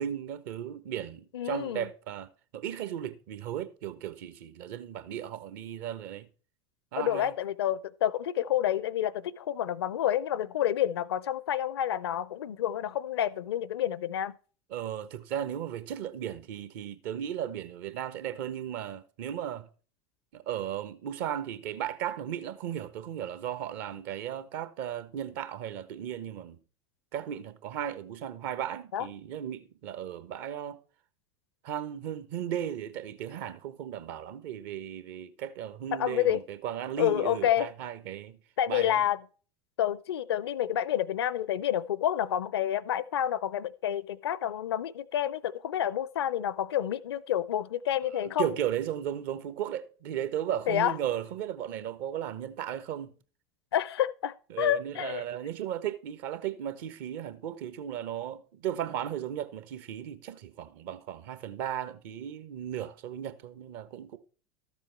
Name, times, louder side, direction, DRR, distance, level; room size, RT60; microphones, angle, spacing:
voice 1, 0.0-6.3 6.9-7.3 14.7-19.7 20.3-26.6 27.1-30.8 31.6-38.4 38.7-39.0 48.0-53.1 54.5-64.2, right 10 dB, 50° right, 1.2 m, -36 dB
voice 2, 1.3-1.9 7.0-14.3 28.9-29.1 35.9-36.4 37.0-37.7 38.6-39.2 39.8-48.5 50.7-50.9 53.7-55.2, left 11 dB, 70° left, 0.6 m, -29 dB
13.0 x 7.5 x 4.5 m
figure-of-eight pair, 80°, 14 cm